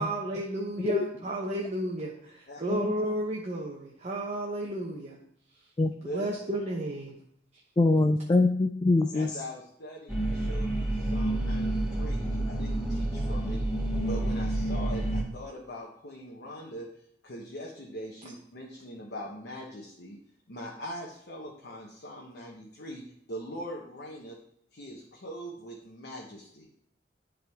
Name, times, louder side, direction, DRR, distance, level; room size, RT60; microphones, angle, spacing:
voice 1, 0.0-5.2 6.1-7.1, right 1 dB, 40° right, -3 dB, 0.9 m, -32 dB
voice 2, 7.8-9.4, left 2 dB, 25° left, 6 dB, 0.3 m, -24 dB
voice 3, 9.1-13.6 14.0-16.9 17.2-20.2 20.5-23.0 23.3-24.4 24.7-26.7, equal, 65° left, -2 dB, 1.0 m, -42 dB
sound 1, 10.1-15.2, right 1 dB, ahead, 2.2 m, -29 dB
11.0 x 3.8 x 3.5 m, 0.69 s
head